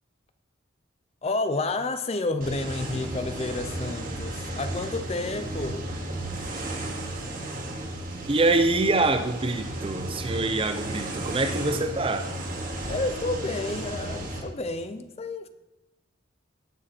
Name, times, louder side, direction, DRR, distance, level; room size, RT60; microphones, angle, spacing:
voice 1, 1.2-5.8 12.9-15.5, left 2 dB, 30° left, 0.5 m, -30 dB
sound 1, 2.4-14.4, right 1 dB, 45° right, 2.0 m, -34 dB
voice 2, 8.3-12.3, right 2 dB, 25° right, 0.7 m, -25 dB
18.0 x 6.6 x 4.3 m
head